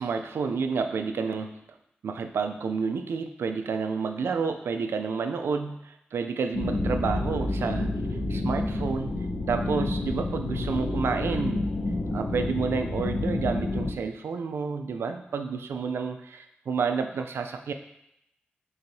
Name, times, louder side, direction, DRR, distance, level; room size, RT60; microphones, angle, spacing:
voice 1, 0.0-1.6 2.0-7.9 8.3-9.1 9.5-11.7 12.1-17.7, right 5 dB, 85° right, 7 dB, 0.3 m, -30 dB
sound 1, 6.5-13.9, left 2 dB, 70° left, 0.8 m, -29 dB
4.5 x 3.8 x 2.6 m, 0.80 s
cardioid pair, 45°, 4 cm